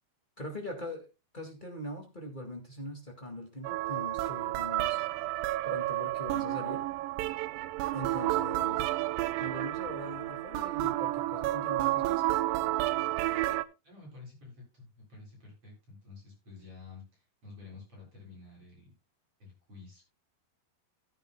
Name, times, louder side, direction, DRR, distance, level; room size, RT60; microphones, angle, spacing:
voice 1, 0.4-1.1 1.3-5.0 5.6-6.8 7.9-8.9 9.4-12.2, left 1 dB, 25° left, 2 dB, 1.0 m, -41 dB
sound 1, 3.6-13.7, right 16 dB, 80° right, 2.0 m, -31 dB
voice 2, 8.5-8.9 13.8-18.9 19.4-20.1, left 4 dB, 35° right, -2 dB, 8.9 m, -50 dB
16.5 x 9.8 x 2.2 m, 0.26 s
omnidirectional pair, 4.7 m